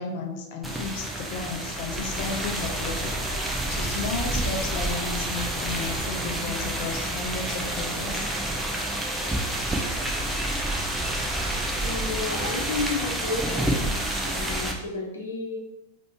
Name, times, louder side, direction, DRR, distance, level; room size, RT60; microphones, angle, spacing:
voice 1, 0.0-3.1 3.7-8.3, left 4 dB, 50° left, 2 dB, 0.9 m, -33 dB
sound 1, 0.6-14.7, right 1 dB, 10° right, 0.7 m, -29 dB
voice 2, 11.8-13.8 14.2-15.6, left 3 dB, 70° left, 0 dB, 1.1 m, -31 dB
5.2 x 3.1 x 3.0 m, 0.90 s
figure-of-eight pair, 90°, 0 cm